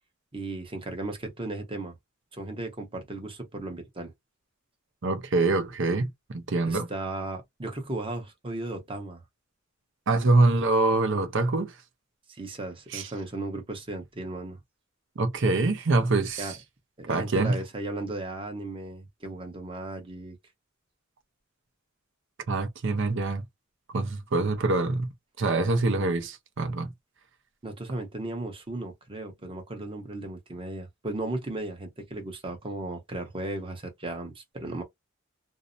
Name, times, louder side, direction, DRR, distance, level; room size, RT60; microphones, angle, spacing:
voice 1, 0.3-1.9 2.3-4.1 6.7-9.2 12.3-14.6 16.4-16.5 17.0-20.4 27.6-34.8, right 2 dB, 25° right, 0.9 m, -36 dB
voice 2, 5.0-6.9 10.1-11.7 12.9-13.1 15.2-16.6 17.1-17.6 22.5-23.4 23.9-25.1 25.4-26.9, right 3 dB, 65° right, 0.6 m, -25 dB
2.6 x 2.0 x 2.5 m
head